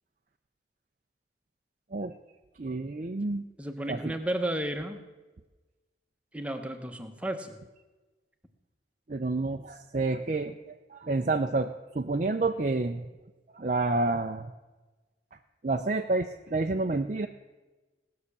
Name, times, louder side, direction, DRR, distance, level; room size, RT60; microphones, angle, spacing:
voice 1, 2.6-3.4 3.9-4.2 9.1-10.6 10.9-13.1 13.5-14.5 15.6-17.3, right 3 dB, 40° right, 5 dB, 0.5 m, -29 dB
voice 2, 3.6-5.0 6.3-7.6, right 1 dB, 5° right, 5 dB, 1.1 m, -33 dB
17.5 x 6.6 x 8.5 m, 1.2 s
head